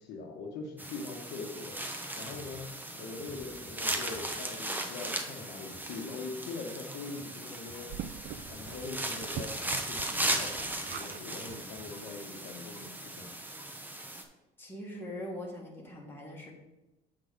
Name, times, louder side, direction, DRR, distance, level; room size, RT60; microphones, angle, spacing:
voice 1, 0.0-1.8 2.2-7.9 8.5-13.3, left 4 dB, 85° left, 2 dB, 1.1 m, -42 dB
sound 1, 0.8-14.2, right 1 dB, 10° right, 0.8 m, -37 dB
sound 2, 7.9-11.2 11.5-11.6 12.1-12.2 12.4-12.5, right 9 dB, 65° right, 0.4 m, -44 dB
voice 2, 14.6-16.5, left 1 dB, 15° left, -2 dB, 1.8 m, -41 dB
7.8 x 3.9 x 5.0 m, 1.0 s
cardioid pair, 110°, 17 cm